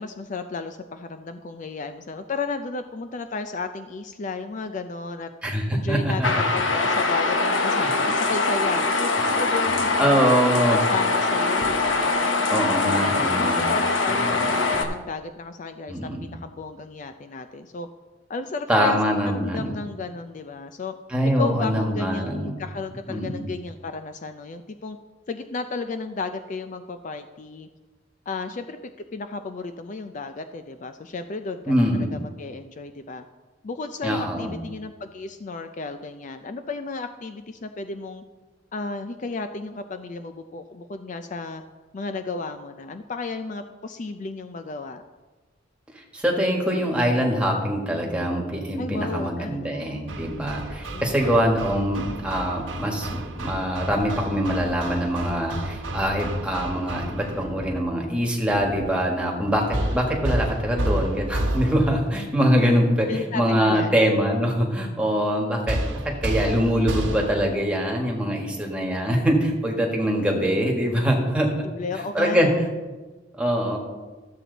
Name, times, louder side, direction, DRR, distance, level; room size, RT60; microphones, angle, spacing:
voice 1, 0.0-5.3 5.7-10.2 10.7-13.0 13.3-17.9 18.3-19.0 19.3-20.9 21.2-25.0 25.3-27.7 28.3-28.8 29.1-31.7 32.1-33.2 33.6-38.2 38.7-41.6 41.9-45.0 48.8-50.1 50.9-51.5 63.1-64.0 71.6-72.5, left 4 dB, 40° left, 8 dB, 0.4 m, -33 dB
voice 2, 5.4-6.3 6.7-6.8 7.8-7.9 10.0-10.8 12.5-13.7 14.1-14.2 15.9-16.3 18.7-19.7 21.1-22.6 23.1-23.4 31.7-32.1 34.0-34.5 46.1-59.6 59.9-71.5 71.9-72.5 73.3-73.8, equal, 5° right, -1 dB, 1.7 m, -23 dB
sound 1, 6.2-14.8, left 3 dB, 85° left, 1.0 m, -23 dB
Hammer, 50.1-57.5 59.7-62.1 65.7-67.6, right 1 dB, 90° right, 1.3 m, -30 dB
sound 2, 55.1-55.2 55.8-57.9 58.5-59.0 59.4-60.1 60.6-61.1 61.6-62.2, right 1 dB, 20° right, 1.4 m, -42 dB
13.0 x 7.6 x 4.0 m, 1.3 s
head